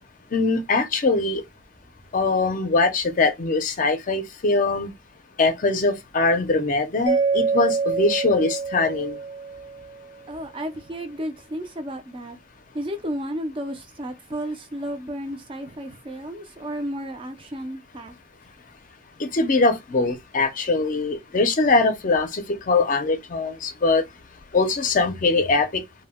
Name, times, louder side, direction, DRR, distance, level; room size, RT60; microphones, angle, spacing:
voice 1, 0.3-1.4 2.1-4.9 5.4-9.2 19.2-24.0 24.5-25.8, left 3 dB, 45° left, 0.5 m, -22 dB
Mallet percussion, 7.1-10.0, right 4 dB, 75° right, 0.8 m, -25 dB
voice 2, 10.3-12.4 12.7-18.1, equal, 25° right, 0.4 m, -33 dB
2.1 x 2.1 x 3.4 m
head